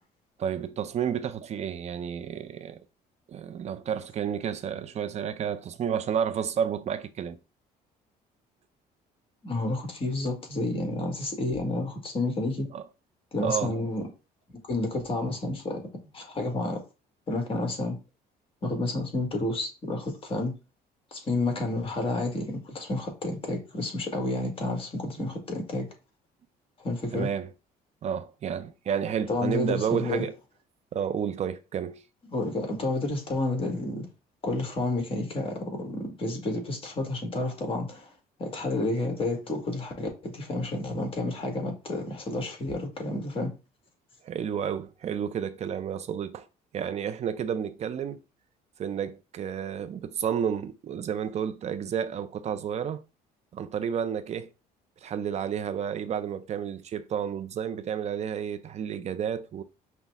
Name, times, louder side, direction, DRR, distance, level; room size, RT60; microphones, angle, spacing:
voice 1, 0.4-2.8 3.3-7.4 12.7-12.8 13.4-13.7 25.2-25.3 27.1-27.5 28.0-30.3 30.9-32.0 44.2-46.5 46.7-48.2 48.8-53.0 53.5-54.5 55.0-59.6, right 8 dB, 40° right, 0.4 m, -31 dB
voice 2, 9.4-12.7 13.3-14.0 14.7-15.8 16.1-16.8 17.3-18.0 18.6-20.5 21.1-25.9 26.8-27.3 29.3-30.2 32.3-34.1 34.4-38.1 38.4-43.5, left 2 dB, 35° left, 1.5 m, -30 dB
5.6 x 2.1 x 3.4 m
cardioid pair, 110°, 17 cm